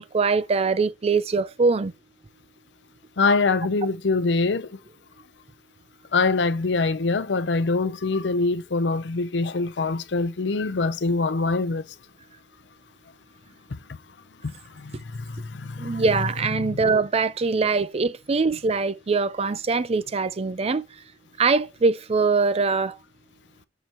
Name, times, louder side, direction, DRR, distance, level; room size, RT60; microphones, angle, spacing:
voice 1, 0.0-1.9 15.8-20.8 21.4-23.0, right 4 dB, 35° right, 0.5 m, -23 dB
voice 2, 3.2-4.8 6.1-11.8 13.7-14.0 14.4-16.0 16.6-16.8, left 3 dB, 75° left, 0.6 m, -24 dB
6.8 x 4.5 x 4.4 m
head